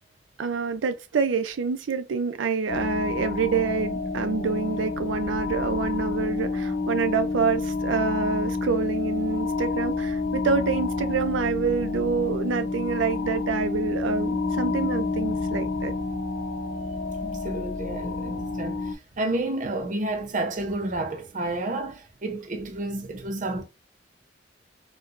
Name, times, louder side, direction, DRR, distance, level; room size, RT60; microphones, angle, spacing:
voice 1, 0.4-15.9, right 5 dB, 85° right, 0.4 m, -27 dB
sound 1, 2.7-18.9, left 3 dB, 60° left, 0.7 m, -29 dB
voice 2, 17.2-23.6, right 2 dB, 45° right, 0.7 m, -30 dB
4.4 x 2.2 x 2.5 m
head